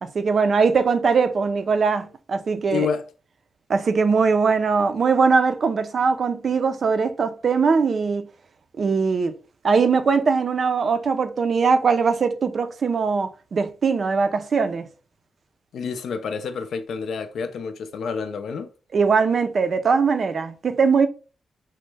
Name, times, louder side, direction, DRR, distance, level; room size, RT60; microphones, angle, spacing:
voice 1, 0.1-2.9 3.7-8.3 8.8-9.3 9.6-14.9 18.9-21.1, right 5 dB, 50° right, 0.3 m, -21 dB
voice 2, 2.7-3.1 15.7-18.7, left 6 dB, 90° left, 0.4 m, -29 dB
3.1 x 2.0 x 3.2 m
wide cardioid pair, 150°, 0 cm